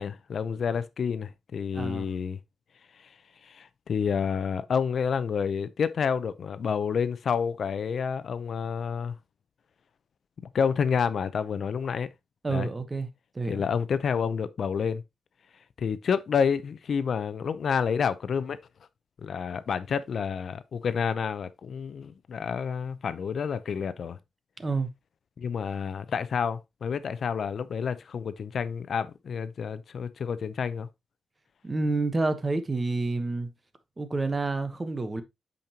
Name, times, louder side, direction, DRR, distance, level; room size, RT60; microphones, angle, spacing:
voice 1, 0.0-2.4 3.0-3.1 3.4-9.2 10.5-12.1 12.5-12.7 13.5-15.0 15.8-18.6 19.2-24.2 25.4-30.9, left 6 dB, 60° left, 0.6 m, -29 dB
voice 2, 1.7-2.1 12.4-13.1 13.3-13.7 24.6-24.9 31.6-33.5 34.0-35.2, right 3 dB, 25° right, 1.1 m, -29 dB
8.5 x 5.3 x 2.9 m
wide cardioid pair, 115°, 0 cm